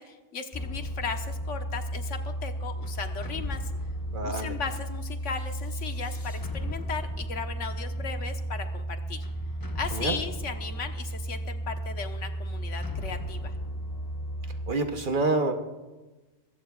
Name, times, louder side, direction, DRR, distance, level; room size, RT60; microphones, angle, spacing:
voice 1, 0.0-3.7 4.2-9.3 9.7-13.5, left 5 dB, 90° left, 6 dB, 1.4 m, -36 dB
sound 1, 0.5-14.7, right 1 dB, 20° left, 0.6 m, -34 dB
voice 2, 4.1-4.5 9.9-10.2 14.7-15.5, right 2 dB, 45° right, 6 dB, 1.1 m, -27 dB
22.5 x 15.0 x 2.3 m, 1.2 s
omnidirectional pair, 1.2 m